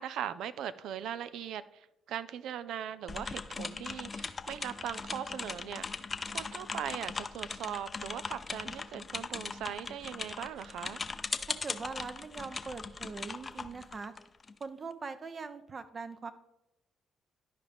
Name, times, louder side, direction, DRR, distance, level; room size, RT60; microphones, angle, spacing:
voice 1, 0.0-5.9 6.2-11.0, right 9 dB, 75° right, 15 dB, 0.4 m, -40 dB
sound 1, 3.1-14.6, left 4 dB, 35° left, 0.6 m, -39 dB
voice 2, 11.6-14.1 14.6-16.3, right 4 dB, 45° right, 10 dB, 0.8 m, -42 dB
12.0 x 5.0 x 3.5 m, 0.88 s
supercardioid pair, 55°, 0 cm